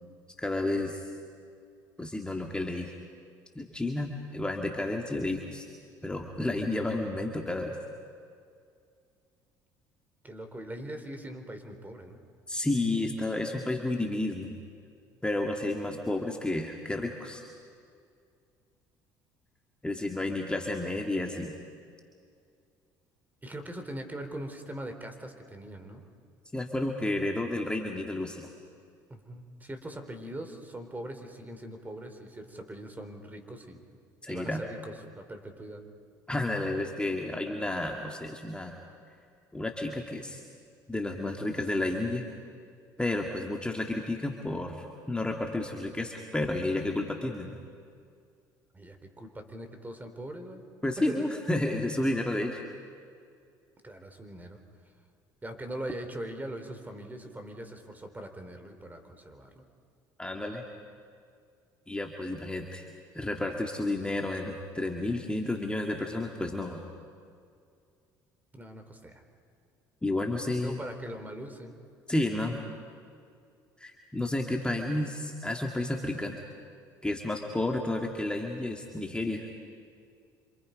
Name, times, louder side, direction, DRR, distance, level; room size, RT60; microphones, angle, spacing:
voice 1, 0.4-1.1 2.0-2.9 3.6-5.7 6.0-7.8 12.5-14.6 15.2-17.4 19.8-21.5 26.5-28.5 34.2-34.6 36.3-38.8 39.5-40.4 40.9-42.3 43.0-47.6 50.8-52.6 60.2-60.6 61.9-62.8 63.1-66.8 70.0-70.8 72.1-72.6 73.8-76.4 77.0-79.5, left 2 dB, 10° left, 1 dB, 2.2 m, -31 dB
voice 2, 10.2-12.2 23.4-26.0 29.1-33.8 34.3-35.8 48.7-50.6 51.1-51.2 53.8-54.6 55.4-59.6 68.5-69.2 70.6-71.8, right 1 dB, 20° right, 6 dB, 3.8 m, -41 dB
28.0 x 26.0 x 5.3 m, 2.3 s
hypercardioid pair, 70°, 9 cm